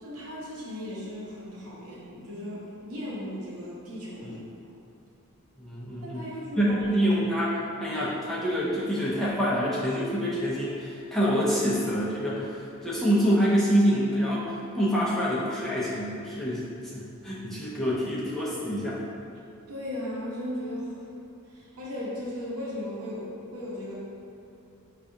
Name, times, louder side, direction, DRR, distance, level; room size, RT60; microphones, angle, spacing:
voice 1, 0.0-4.4 6.0-6.7 19.7-20.9 21.5-23.9, left 1 dB, 85° right, -6 dB, 0.8 m, -36 dB
voice 2, 5.6-6.3 6.6-16.6 16.9-19.0, equal, ahead, -9 dB, 0.5 m, -26 dB
4.6 x 2.4 x 2.7 m, 2.6 s
head